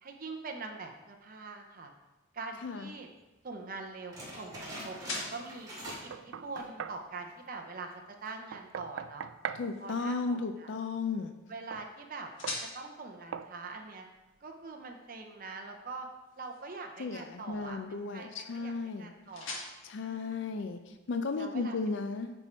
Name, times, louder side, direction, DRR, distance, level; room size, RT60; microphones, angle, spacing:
voice 1, 0.0-1.9 2.3-3.1 3.4-5.7 6.0-9.3 9.8-10.7 11.5-12.3 12.7-14.0 14.4-16.1 16.4-19.5 20.0-20.5 21.4-21.8, right 3 dB, 45° right, 3 dB, 0.7 m, -43 dB
sound 1, 2.3-21.2, left 3 dB, 80° left, 1.6 m, -49 dB
sound 2, 4.1-6.2 6.4-6.8 7.3-7.4 8.1-8.5, equal, 20° right, 2.6 m, -44 dB
Knock, 5.9-7.0 8.5-9.7 11.7-11.9 12.4-12.7 13.3-13.5, right 7 dB, 80° right, 0.3 m, -40 dB
voice 2, 9.5-11.3 17.0-19.1 19.8-22.3, left 4 dB, 65° left, 7 dB, 0.4 m, -35 dB
9.8 x 4.4 x 4.4 m, 1.1 s
head